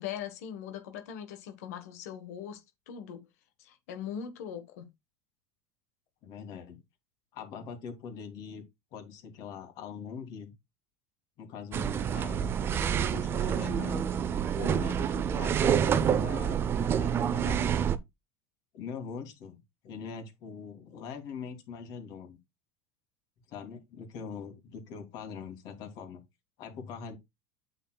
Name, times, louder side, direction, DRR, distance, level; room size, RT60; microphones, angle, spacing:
voice 1, 0.0-3.3 3.6-4.9, left 8 dB, 90° left, 1.3 m, -40 dB
voice 2, 6.2-6.8 7.3-8.6 8.9-10.5 11.4-14.1 14.5-17.7 18.7-22.4 23.5-26.2 26.6-27.2, left 6 dB, 55° left, 2.9 m, -42 dB
sound 1, 11.7-18.0, right 8 dB, 30° right, 0.6 m, -28 dB
8.9 x 7.2 x 2.3 m
supercardioid pair, 145°, 8 cm